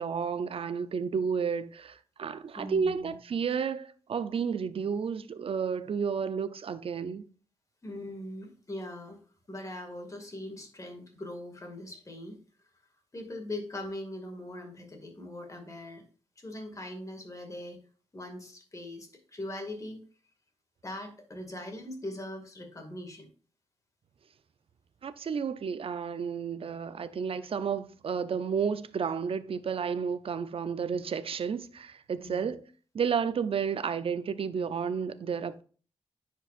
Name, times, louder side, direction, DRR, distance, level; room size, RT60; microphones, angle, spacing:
voice 1, 0.0-7.3 25.0-32.6 32.9-35.6, right 6 dB, 60° right, 0.5 m, -31 dB
voice 2, 2.5-3.1 7.8-9.2 9.5-12.4 13.1-16.0 16.4-17.8 18.1-20.0 20.8-23.3 32.2-32.6, left 1 dB, 30° left, 2.1 m, -41 dB
9.9 x 4.7 x 2.5 m
cardioid pair, 70°, 11 cm